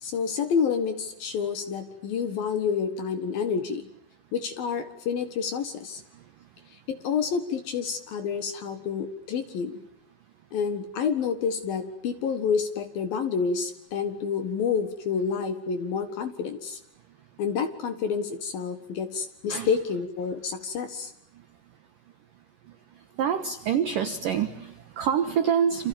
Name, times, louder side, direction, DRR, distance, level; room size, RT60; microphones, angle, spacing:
voice 1, 0.0-3.9 4.3-6.0 6.9-9.8 10.5-16.8 17.4-21.1, left 6 dB, 60° left, 9 dB, 2.7 m, -29 dB
voice 2, 23.2-25.9, right 8 dB, 90° right, 9 dB, 1.9 m, -26 dB
29.0 x 28.5 x 7.1 m, 0.76 s
omnidirectional pair, 6.0 m